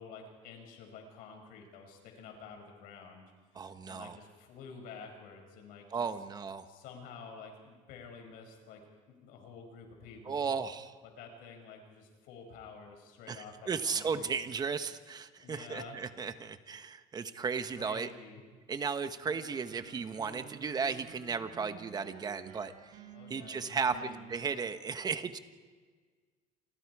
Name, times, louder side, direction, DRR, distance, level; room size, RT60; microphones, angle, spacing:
voice 1, 0.0-3.3 3.7-6.1 6.6-8.8 9.1-10.5 11.0-14.4 15.4-16.0 17.7-18.4 23.1-24.3, left 5 dB, 75° left, 3 dB, 6.7 m, -50 dB
voice 2, 3.5-4.2 5.9-6.7 10.3-10.9 13.3-18.1 18.7-22.7 23.3-25.4, right 5 dB, 25° right, 9 dB, 1.3 m, -35 dB
sound 1, 19.2-24.7, right 7 dB, 75° right, 4.5 m, -52 dB
29.0 x 25.5 x 4.9 m, 1.5 s
cardioid pair, 130°, 15 cm